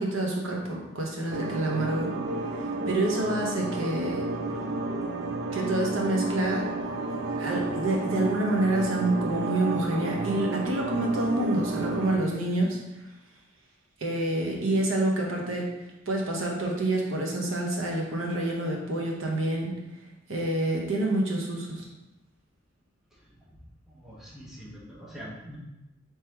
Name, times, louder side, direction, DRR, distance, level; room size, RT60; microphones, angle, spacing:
voice 1, 0.0-2.1 2.6-4.3 5.5-6.7 7.4-12.8 14.0-15.7 16.1-19.7 20.3-21.8, right 1 dB, 80° right, -1 dB, 1.0 m, -27 dB
sound 1, 1.3-12.2, right 2 dB, 55° right, 0.4 m, -31 dB
voice 2, 23.9-25.6, equal, ahead, -6 dB, 0.8 m, -44 dB
3.6 x 3.1 x 4.4 m, 0.97 s
head